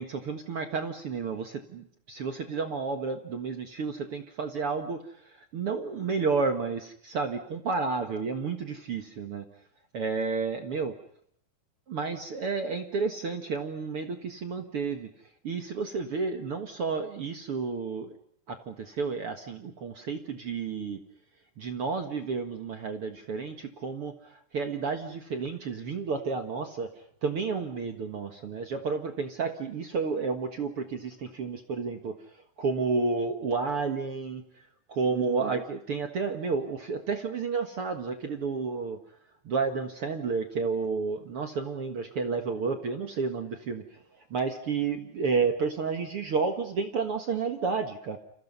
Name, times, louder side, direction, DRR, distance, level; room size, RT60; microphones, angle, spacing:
voice 1, 0.0-5.0 5.5-9.4 9.9-10.9 11.9-15.1 15.4-18.1 18.5-21.0 21.6-26.9 27.2-32.2 32.6-34.4 34.9-39.0 39.4-43.8 44.3-48.2, right 4 dB, 50° right, 6 dB, 1.7 m, -31 dB
29.5 x 28.0 x 5.5 m, 0.66 s
omnidirectional pair, 4.6 m